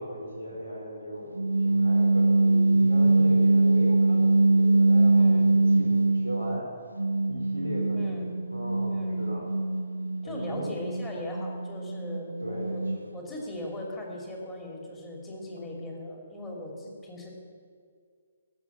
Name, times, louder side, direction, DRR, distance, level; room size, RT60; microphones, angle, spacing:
voice 1, 0.0-6.7 7.3-8.0 8.5-9.5 10.2-10.7 12.4-12.8, equal, 85° left, -2 dB, 4.3 m, -37 dB
sound 1, 1.3-6.6 7.0-13.2, right 2 dB, 80° right, 0.4 m, -23 dB
voice 2, 5.1-5.5 7.9-8.3 8.9-9.3 10.2-12.8 13.1-17.3, left 1 dB, 15° left, -1 dB, 2.8 m, -39 dB
14.0 x 7.0 x 9.7 m, 2.1 s
figure-of-eight pair, 135°, 0 cm